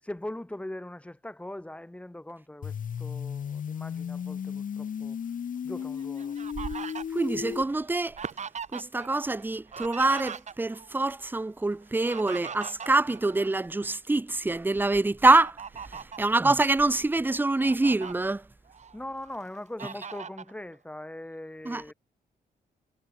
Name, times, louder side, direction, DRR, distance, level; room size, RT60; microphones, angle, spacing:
voice 1, 0.0-5.2 5.6-6.4 15.9-16.0 18.9-21.9, left 1 dB, 5° left, 7.8 m, -41 dB
sound 1, 2.6-7.6, left 8 dB, 55° left, 3.4 m, -34 dB
Fowl, 5.8-9.1 9.4-10.9 11.8-13.9 14.4-14.6 15.2-16.3 16.9-17.0 17.4-18.1 18.7-19.4 19.8-20.5, right 6 dB, 45° right, 3.2 m, -40 dB
voice 2, 7.1-8.2 8.7-15.6 15.9-18.4 21.7-21.9, right 2 dB, 10° right, 1.0 m, -25 dB
cardioid pair, 120°, 16 cm